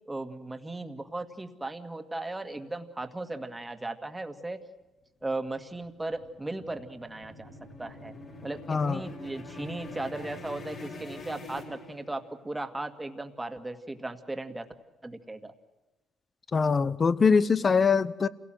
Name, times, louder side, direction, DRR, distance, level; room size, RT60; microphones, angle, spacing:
voice 1, 0.1-4.6 5.2-7.5 7.8-8.1 8.4-14.7 15.0-15.5, right 2 dB, 15° right, 8 dB, 1.9 m, -37 dB
sound 1, 5.2-12.5, left 2 dB, 55° left, 4.7 m, -45 dB
voice 2, 8.7-9.0 16.5-18.3, left 5 dB, 35° left, 18 dB, 0.8 m, -23 dB
27.5 x 17.5 x 7.7 m, 1.1 s
cardioid pair, 90°, 0 cm